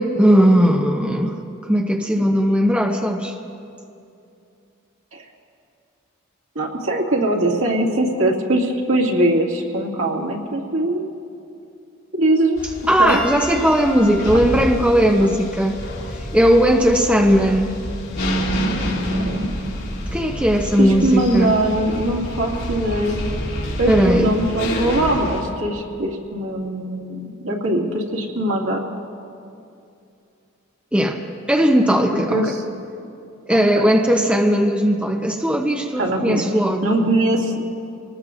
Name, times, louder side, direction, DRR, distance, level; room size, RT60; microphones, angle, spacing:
voice 1, 0.0-1.4 1.6-3.3 12.9-15.8 16.2-17.7 20.1-21.5 23.9-24.3 30.9-31.2 31.5-32.5 33.5-36.8, equal, 5° right, 2 dB, 0.7 m, -17 dB
voice 2, 6.5-11.1 12.1-13.2 14.0-14.4 15.2-15.3 18.8-19.5 20.8-23.2 23.8-28.8 32.1-32.6 33.5-33.9 36.0-36.4 36.8-37.6, right 1 dB, 85° right, -2 dB, 2.3 m, -22 dB
sound 1, 12.6-25.4, equal, 85° left, 3.5 m, -28 dB
Piano, 13.1-17.8 18.7-18.9 20.8-20.9, left 2 dB, 10° left, 3.2 m, -37 dB
26.0 x 19.5 x 2.6 m, 2.6 s
head